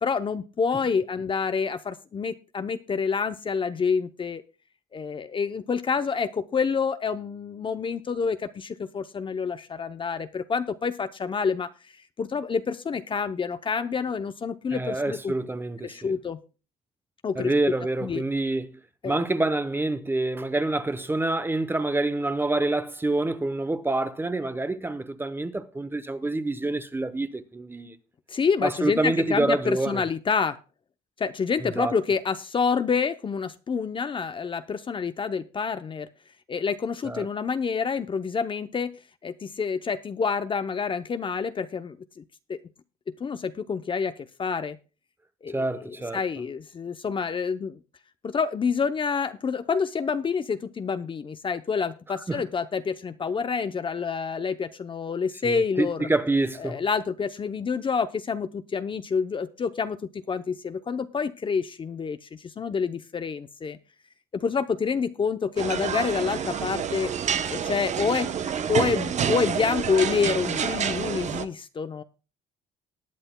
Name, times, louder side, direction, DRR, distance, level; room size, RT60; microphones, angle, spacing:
voice 1, 0.0-4.4 4.9-11.7 12.2-15.3 15.8-16.4 17.2-17.5 18.0-18.2 19.0-19.2 28.3-30.6 31.2-36.1 36.5-38.9 39.2-42.2 42.5-42.6 43.1-44.1 44.4-44.8 45.4-45.6 46.1-47.8 48.2-56.1 56.6-60.0 60.3-63.8 64.3-67.1 67.5-68.3 68.7-72.0, left 5 dB, 30° left, 0.6 m, -28 dB
voice 2, 14.7-16.1 17.4-18.8 19.0-28.0 28.6-30.0 31.6-31.9 37.0-37.3 45.5-46.2 52.3-52.4 55.4-56.8, right 2 dB, 15° right, 0.8 m, -27 dB
sound 1, 65.6-71.4, right 8 dB, 45° right, 0.8 m, -28 dB
19.0 x 9.6 x 2.2 m
cardioid pair, 110°, 17 cm